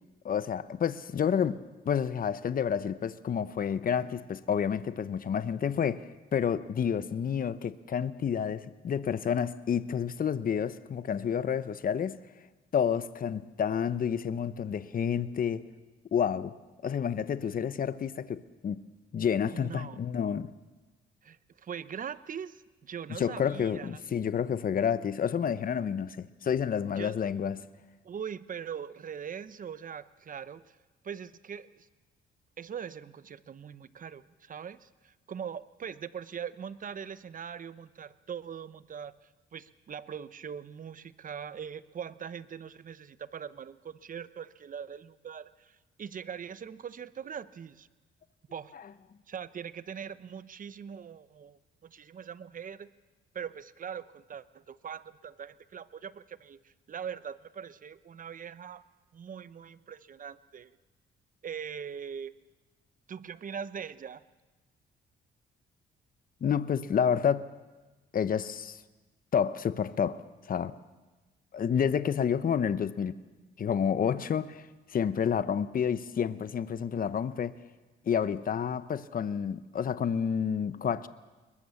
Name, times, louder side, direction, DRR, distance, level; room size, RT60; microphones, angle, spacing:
voice 1, 0.2-1.6 1.9-12.2 12.7-15.6 16.1-16.6 16.8-18.8 19.1-20.5 23.1-27.7 66.4-67.5 68.1-68.8 69.3-70.2 70.5-70.8 71.5-73.2 73.6-74.7 74.9-77.6 78.1-81.1, left 7 dB, 45° left, 0.9 m, -29 dB
voice 2, 19.5-20.0 21.2-24.0 26.9-27.1 28.0-30.8 31.0-31.9 32.6-39.1 39.5-47.9 48.5-48.7 49.3-52.9 53.3-58.8 59.1-60.7 61.4-62.3 63.1-64.2, right 7 dB, 45° right, 0.9 m, -41 dB
22.0 x 21.0 x 7.1 m
cardioid pair, 90°, 20 cm